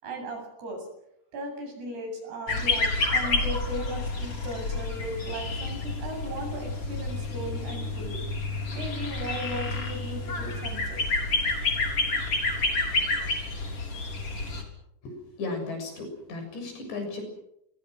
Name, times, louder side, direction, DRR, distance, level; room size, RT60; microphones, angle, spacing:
voice 1, 0.0-0.9 1.3-8.2 8.7-11.0, right 1 dB, 70° right, 4 dB, 10.0 m, -37 dB
sound 1, 2.5-14.6, left 3 dB, 35° left, 4.7 m, -29 dB
voice 2, 15.0-17.2, left 3 dB, 80° left, 5 dB, 9.3 m, -35 dB
27.5 x 24.5 x 6.4 m, 0.78 s
omnidirectional pair, 4.8 m